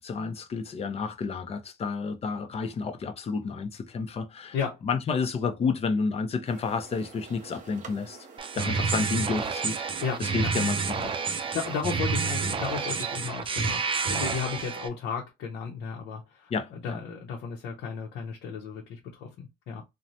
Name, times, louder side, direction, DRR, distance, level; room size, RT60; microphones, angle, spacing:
voice 1, 0.0-4.6 4.8-8.2 8.6-9.8 10.2-11.2 16.5-17.0, left 5 dB, 35° left, 0.6 m, -30 dB
sound 1, 6.4-13.2, right 6 dB, 50° right, 0.8 m, -46 dB
sound 2, 8.4-14.9, right 5 dB, 30° right, 0.4 m, -29 dB
voice 2, 10.0-10.5 11.3-19.8, left 6 dB, 80° left, 0.7 m, -34 dB
3.1 x 2.1 x 2.6 m
cardioid pair, 110°, 17 cm